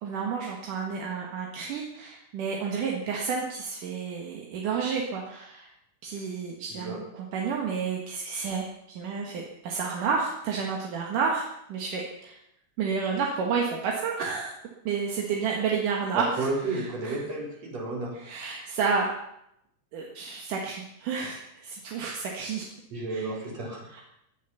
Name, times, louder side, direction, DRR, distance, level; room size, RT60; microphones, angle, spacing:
voice 1, 0.0-5.7 6.0-12.4 12.8-14.5 14.8-17.2 18.1-19.1 19.9-22.7 23.1-23.3 23.9-24.0, right 5 dB, 75° right, -1 dB, 3.1 m, -30 dB
voice 2, 16.1-18.1 22.9-23.9, right 2 dB, 50° right, -2 dB, 5.1 m, -32 dB
18.5 x 11.0 x 5.7 m, 0.78 s
omnidirectional pair, 3.8 m